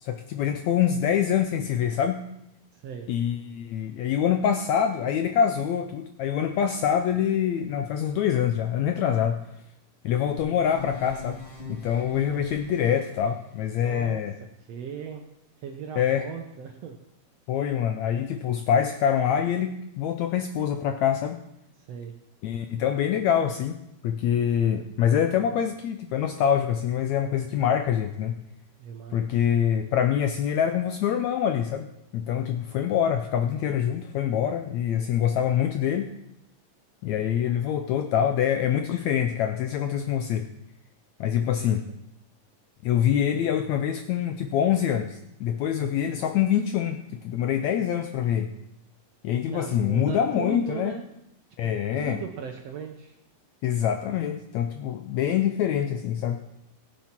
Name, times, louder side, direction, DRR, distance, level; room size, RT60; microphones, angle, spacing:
voice 1, 0.0-2.2 3.1-9.4 10.0-11.4 11.7-14.3 16.0-16.2 17.5-21.4 22.4-28.4 29.1-31.9 32.1-36.1 37.0-40.5 41.2-41.8 42.8-47.0 47.2-48.5 49.2-51.0 51.6-52.2 53.6-56.4, left 9 dB, 75° left, 7 dB, 1.7 m, -25 dB
voice 2, 2.7-3.1 13.8-14.2 14.7-15.2 15.6-17.0 21.8-22.1 28.8-29.3 41.6-41.7 45.8-45.9 49.5-51.0 51.6-53.2, right 7 dB, 70° right, 4 dB, 1.6 m, -38 dB
sound 1, 10.4-13.1, left 5 dB, 25° left, 1.3 m, -40 dB
17.0 x 7.4 x 5.9 m, 0.82 s
omnidirectional pair, 3.9 m